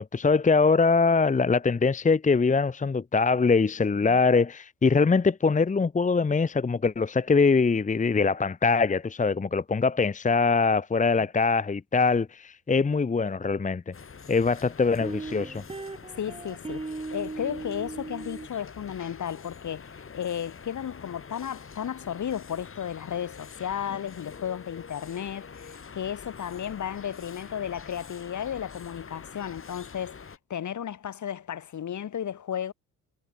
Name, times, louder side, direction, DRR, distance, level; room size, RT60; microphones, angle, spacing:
voice 1, 0.0-13.9 14.3-15.6, left 4 dB, 20° left, 1.0 m, -23 dB
sound 1, 13.9-30.4, left 5 dB, 35° left, 4.8 m, -46 dB
sound 2, 14.0-14.1 15.0-18.5, right 3 dB, 15° right, 1.5 m, -37 dB
voice 2, 16.2-32.7, left 9 dB, 55° left, 3.7 m, -34 dB
supercardioid pair, 75°, 35 cm